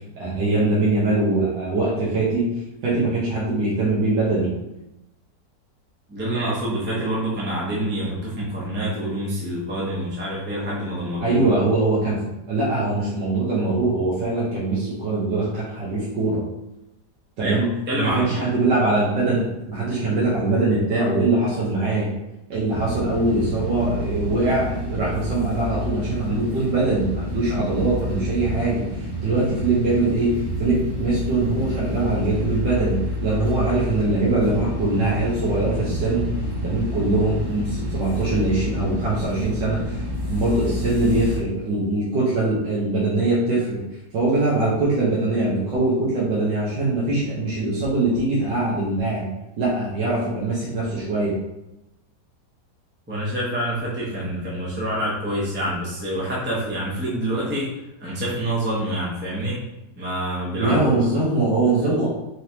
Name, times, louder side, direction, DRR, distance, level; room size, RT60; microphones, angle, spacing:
voice 1, 0.2-2.5 2.8-4.5 11.2-12.2 12.5-16.4 17.4-17.7 18.0-22.1 22.5-28.8 29.2-30.3 30.6-36.3 36.6-40.0 40.3-43.8 44.1-49.2 49.6-51.4 60.5-62.1, right 2 dB, 90° right, -7 dB, 1.6 m, -22 dB
voice 2, 6.1-11.4 17.4-17.6 17.9-18.5 53.1-57.7 58.0-59.6 60.0-60.8, right 1 dB, 10° right, -7 dB, 0.8 m, -26 dB
sound 1, 22.7-41.4, left 1 dB, 45° right, 1.6 m, -29 dB
4.4 x 3.3 x 2.8 m, 0.93 s
omnidirectional pair, 1.8 m